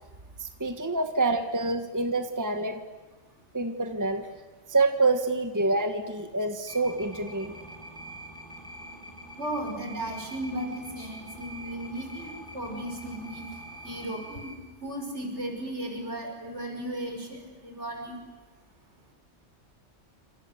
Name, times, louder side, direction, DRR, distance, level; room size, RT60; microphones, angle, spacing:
voice 1, 0.4-2.8 3.5-4.3 4.7-7.6, right 3 dB, 15° right, 7 dB, 1.5 m, -27 dB
sound 1, 6.7-14.5, right 1 dB, 5° left, 5.8 m, -44 dB
voice 2, 9.4-13.5 13.8-14.5 14.8-18.2, right 1 dB, 65° right, 3 dB, 6.0 m, -35 dB
28.5 x 26.5 x 8.0 m, 1.3 s
omnidirectional pair, 1.3 m